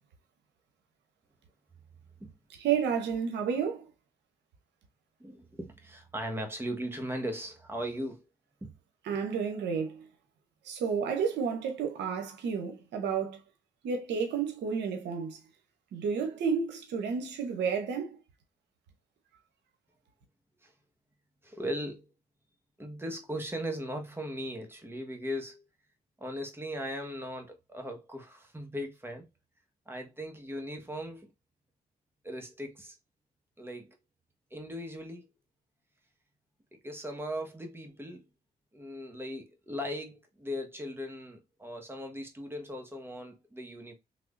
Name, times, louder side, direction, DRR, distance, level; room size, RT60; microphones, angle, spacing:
voice 1, 2.6-3.9 9.1-10.1 10.6-13.4 13.8-15.4 15.9-18.2, right 6 dB, 90° right, 0.8 m, -31 dB
voice 2, 5.2-8.2 8.6-8.7 20.6-20.7 21.4-22.1 22.8-25.6 26.2-29.3 29.9-31.3 32.2-33.0 33.6-33.9 34.5-35.2 36.7-38.2 38.7-43.9, equal, 15° right, 1.2 m, -38 dB
3.5 x 3.1 x 2.5 m
cardioid pair, 65°, 18 cm